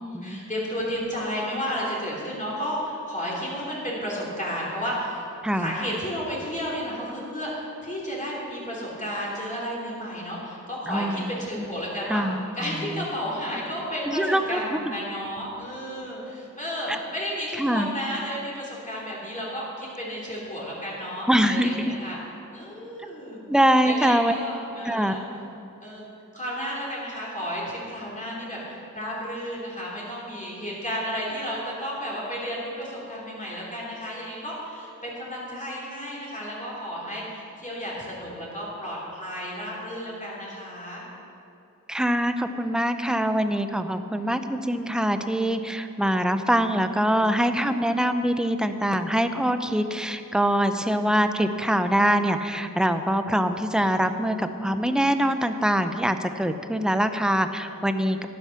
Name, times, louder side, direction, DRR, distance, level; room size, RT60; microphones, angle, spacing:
voice 1, 0.0-5.2 5.5-12.2 12.5-22.2 22.5-23.4 23.8-25.2 25.8-26.0 26.3-41.0, equal, 20° left, -6 dB, 3.1 m, -32 dB
voice 2, 5.4-5.7 10.9-11.6 12.1-13.1 14.1-14.6 14.9-15.0 16.9-17.0 17.6-17.9 21.3-21.7 23.5-24.3 24.8-25.2 41.9-58.3, equal, ahead, 8 dB, 0.6 m, -24 dB
13.0 x 9.6 x 5.9 m, 2.8 s
wide cardioid pair, 90°, 34 cm